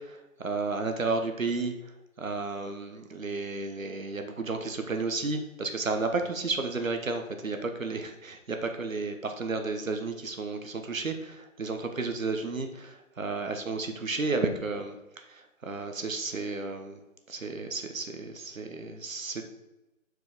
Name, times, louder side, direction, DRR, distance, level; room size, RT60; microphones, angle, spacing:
voice 1, 0.0-1.7 2.2-15.0 15.3-17.0 17.3-19.5, right 3 dB, 65° right, 6 dB, 1.2 m, -32 dB
6.6 x 4.9 x 5.0 m, 0.99 s
hypercardioid pair, 180°, 42 cm